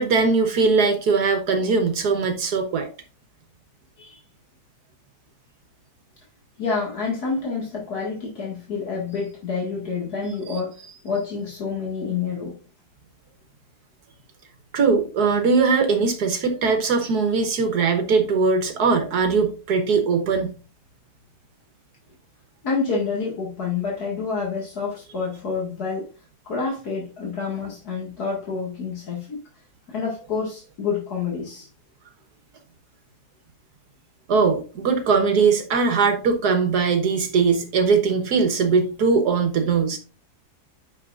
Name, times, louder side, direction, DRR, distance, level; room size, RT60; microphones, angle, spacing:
voice 1, 0.0-2.9 14.7-20.5 34.3-40.0, right 5 dB, 75° right, 5 dB, 1.7 m, -20 dB
voice 2, 6.6-10.8 11.0-12.5 22.6-26.1 26.4-29.4 29.9-31.7, left 5 dB, 75° left, -3 dB, 2.5 m, -28 dB
9.4 x 5.9 x 2.5 m, 0.35 s
omnidirectional pair, 1.7 m